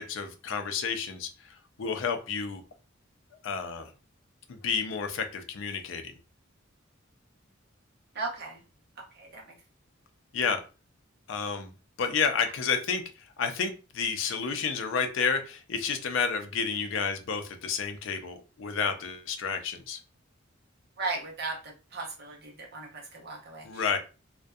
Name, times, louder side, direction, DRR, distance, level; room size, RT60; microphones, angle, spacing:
voice 1, 0.0-2.6 3.4-3.9 4.5-6.1 10.3-10.6 11.3-11.7 12.0-20.0 23.6-24.0, left 5 dB, 65° left, 7 dB, 0.4 m, -30 dB
voice 2, 8.1-8.6 9.2-9.4 21.0-21.6 21.9-24.0, right 3 dB, 50° right, 0 dB, 0.8 m, -36 dB
2.6 x 2.1 x 2.3 m, 0.33 s
head